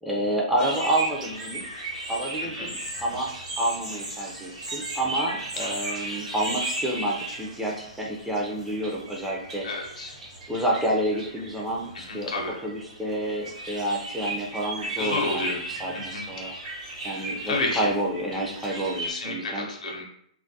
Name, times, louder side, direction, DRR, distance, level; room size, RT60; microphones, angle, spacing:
voice 1, 0.0-3.3 3.6-9.7 10.5-12.3 12.6-16.5 17.0-19.7, right 1 dB, 5° right, -3 dB, 0.3 m, -29 dB
sound 1, 0.6-19.1, right 1 dB, 75° right, 1.0 m, -36 dB
voice 2, 9.6-10.1 12.1-12.5 15.0-15.5 15.9-16.2 17.2-17.9 19.0-20.0, left 3 dB, 80° left, 1 dB, 0.6 m, -30 dB
2.2 x 2.1 x 2.6 m, 0.68 s
hypercardioid pair, 140°, 4 cm